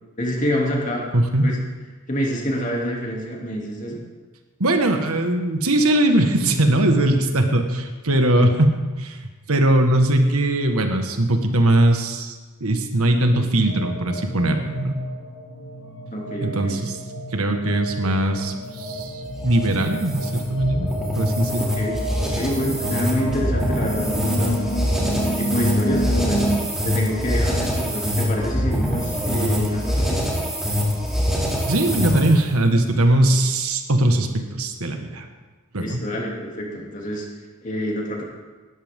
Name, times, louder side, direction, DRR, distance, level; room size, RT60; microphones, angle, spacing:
voice 1, 0.2-1.1 1.4-1.6 2.1-4.0 16.1-16.8 21.6-24.6 25.1-26.4 26.8-30.2 35.8-37.3 37.6-38.2, equal, 35° left, -2 dB, 2.7 m, -27 dB
voice 2, 1.1-1.5 4.6-15.0 16.4-17.0 17.3-20.9 21.2-21.7 31.7-35.3 35.7-36.0, right 1 dB, 80° right, 5 dB, 1.6 m, -20 dB
sound 1, 13.6-26.6, right 1 dB, 55° left, 2.1 m, -30 dB
sound 2, 18.7-32.5, equal, ahead, 2.6 m, -24 dB
19.5 x 13.0 x 3.7 m, 1.3 s
head